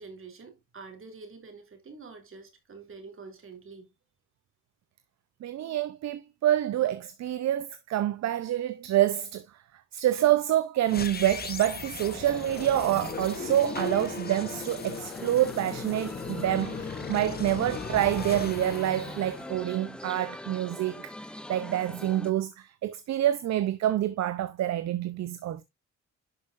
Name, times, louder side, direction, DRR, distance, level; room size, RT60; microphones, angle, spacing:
voice 1, 0.0-3.9, right 4 dB, 45° right, 3.0 m, -46 dB
voice 2, 5.4-9.5 9.9-21.1 21.5-25.6, right 12 dB, 60° right, 0.7 m, -27 dB
sound 1, 10.8-20.1, left 5 dB, 30° left, 1.1 m, -37 dB
sound 2, 12.0-22.3, left 1 dB, 5° left, 0.6 m, -43 dB
11.0 x 5.5 x 2.5 m
cardioid pair, 90°, 30 cm